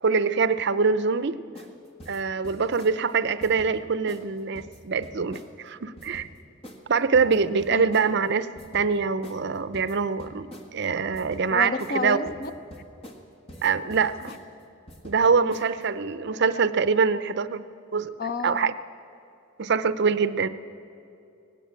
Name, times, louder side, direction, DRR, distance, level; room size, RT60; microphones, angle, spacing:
voice 1, 0.0-1.4 2.1-6.3 6.9-12.3 13.6-14.2 15.0-17.6 17.9-18.1 18.4-18.7 19.6-20.5, right 5 dB, 60° right, 14 dB, 0.6 m, -24 dB
sound 1, 1.5-1.7 2.0-3.0 3.4-3.7 4.1-4.2 4.5-5.5 6.0-6.3 6.6-6.8 7.1-8.1 8.6-8.9 9.2-9.4 9.7-10.7 11.1-11.5 11.8-12.0 12.3-13.2 13.5-14.4 14.9-15.2 15.5-15.8, equal, 30° left, 1.6 m, -44 dB
voice 2, 11.5-12.5 15.3-15.6 18.2-18.7, left 4 dB, 50° left, 12 dB, 0.7 m, -31 dB
18.5 x 17.0 x 8.3 m, 2.7 s
head